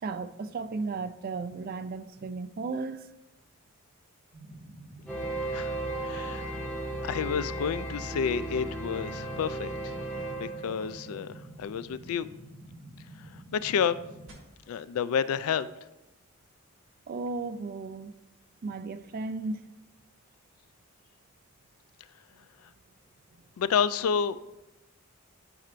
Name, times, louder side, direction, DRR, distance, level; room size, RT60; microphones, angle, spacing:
voice 1, 0.0-3.1 17.1-18.1 18.6-19.6, right 3 dB, 45° right, 0.3 m, -35 dB
sound 1, 4.3-14.3, right 1 dB, 60° right, 1.5 m, -48 dB
sound 2, 5.1-11.4, right 1 dB, 10° left, 1.7 m, -35 dB
voice 2, 6.0-6.5 7.0-9.9 10.3-12.3 13.5-14.0 14.7-15.7 23.6-24.4, left 7 dB, 85° left, 0.3 m, -29 dB
11.5 x 4.4 x 2.5 m
head